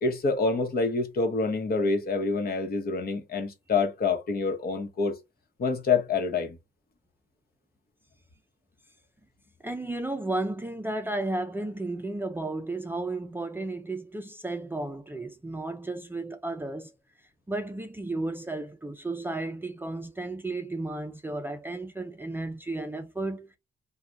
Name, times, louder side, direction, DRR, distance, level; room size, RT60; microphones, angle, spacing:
voice 1, 0.0-5.1 5.6-6.6, left 4 dB, 50° left, 1.0 m, -27 dB
voice 2, 9.6-16.9 17.5-23.6, right 2 dB, 10° right, 0.5 m, -33 dB
2.5 x 2.3 x 3.2 m
cardioid pair, 90°, 20 cm